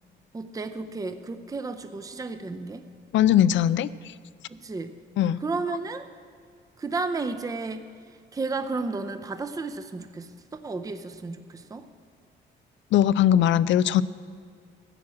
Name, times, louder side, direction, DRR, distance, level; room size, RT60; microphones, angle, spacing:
voice 1, 0.3-2.8 4.5-5.0 5.4-6.1 6.8-7.9 8.3-11.9, right 3 dB, 15° right, 8 dB, 0.6 m, -32 dB
voice 2, 3.1-4.1 5.2-5.4 12.9-14.0, left 11 dB, 70° left, 18 dB, 0.4 m, -20 dB
12.0 x 6.0 x 8.5 m, 2.2 s
cardioid pair, 90°, 20 cm